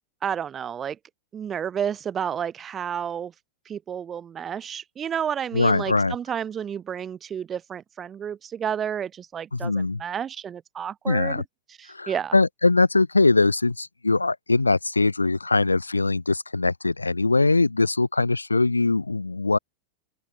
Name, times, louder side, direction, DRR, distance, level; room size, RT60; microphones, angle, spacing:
voice 1, 0.2-1.0 1.3-3.3 3.7-11.4 11.8-12.4, right 8 dB, 25° right, 2.2 m, -31 dB
voice 2, 5.5-6.1 9.5-10.0 11.1-11.4 11.9-19.6, left 3 dB, 80° left, 4.3 m, -22 dB
open air
figure-of-eight pair, 90°, 0 cm